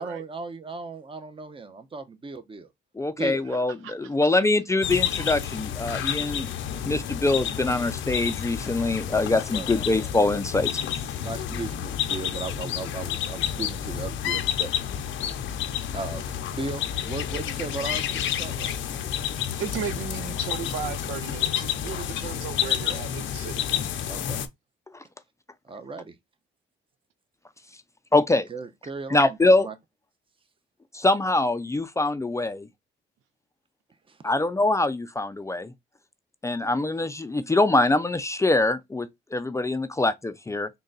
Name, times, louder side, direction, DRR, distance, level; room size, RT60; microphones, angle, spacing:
voice 1, 0.0-2.7 3.2-3.5 9.3-9.7 11.2-14.7 15.9-18.7 24.1-24.4 25.7-26.1 28.5-29.7 34.1-34.2, right 3 dB, 25° right, 0.7 m, -36 dB
voice 2, 3.0-6.5 6.9-10.8 28.1-28.5 29.1-29.7 30.9-32.7 34.2-35.7 36.4-40.7, left 2 dB, 15° left, 0.4 m, -24 dB
voice 3, 3.5-4.2 6.4-6.5 9.0-9.2 19.6-23.6, right 9 dB, 90° right, 0.5 m, -36 dB
sound 1, 4.8-24.5, left 10 dB, 75° left, 0.6 m, -30 dB
3.8 x 2.3 x 3.8 m
cardioid pair, 90°, 20 cm